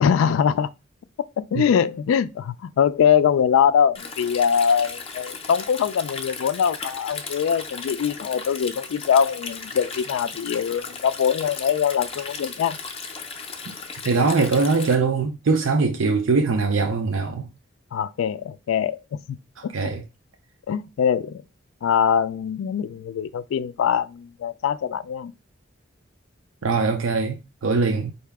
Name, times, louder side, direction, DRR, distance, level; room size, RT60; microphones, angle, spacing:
voice 1, 0.0-0.7 1.4-12.8 17.9-19.0 19.6-19.7 20.7-21.4 21.8-25.3, left 7 dB, 85° left, 0.3 m, -22 dB
Stream, 3.9-14.9, left 5 dB, 30° left, 0.5 m, -36 dB
voice 2, 14.0-17.5 19.7-20.0 26.6-28.1, right 4 dB, 85° right, 0.6 m, -22 dB
4.6 x 2.7 x 3.4 m
head